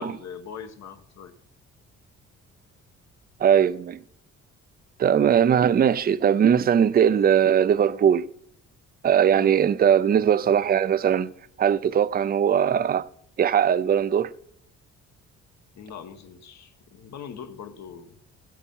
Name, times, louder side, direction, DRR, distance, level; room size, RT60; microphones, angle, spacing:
voice 1, 0.0-1.3 9.3-9.6 15.7-18.2, left 7 dB, 65° left, 1.3 m, -41 dB
voice 2, 3.4-4.0 5.0-8.3 9.0-11.3 11.6-13.1 13.4-14.3, right 8 dB, 30° right, 0.4 m, -20 dB
16.0 x 8.3 x 5.5 m
cardioid pair, 90°, 30 cm